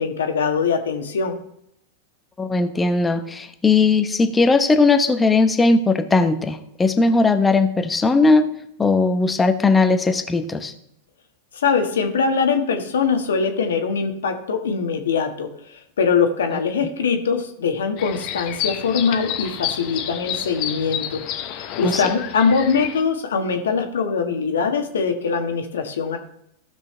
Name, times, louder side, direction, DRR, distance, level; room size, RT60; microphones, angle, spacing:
voice 1, 0.0-1.3 11.5-21.2 21.5-26.2, left 5 dB, 75° left, 5 dB, 1.5 m, -22 dB
voice 2, 2.4-8.4 8.8-10.7 21.8-22.0, left 3 dB, 15° left, 8 dB, 1.0 m, -18 dB
morning atmo june - wood - garden, 18.0-23.0, left 10 dB, 50° left, 1.0 m, -30 dB
15.0 x 6.3 x 3.3 m, 0.75 s
hypercardioid pair, 100°, 0 cm